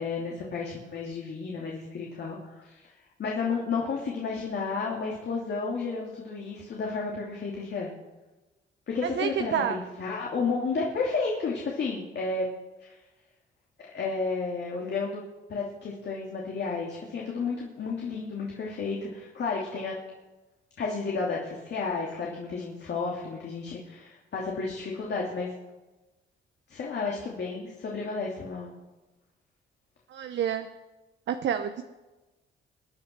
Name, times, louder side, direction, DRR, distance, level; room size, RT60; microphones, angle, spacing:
voice 1, 0.0-2.9 3.2-7.9 8.9-12.5 12.8-13.0 13.9-15.2 15.5-19.9 20.8-25.5 26.7-28.7, left 4 dB, 60° left, -2 dB, 2.8 m, -32 dB
voice 2, 9.0-9.8 30.1-30.7 31.3-31.8, right 9 dB, 65° right, 8 dB, 0.9 m, -28 dB
21.5 x 9.4 x 6.1 m, 1.1 s
cardioid pair, 90°, 20 cm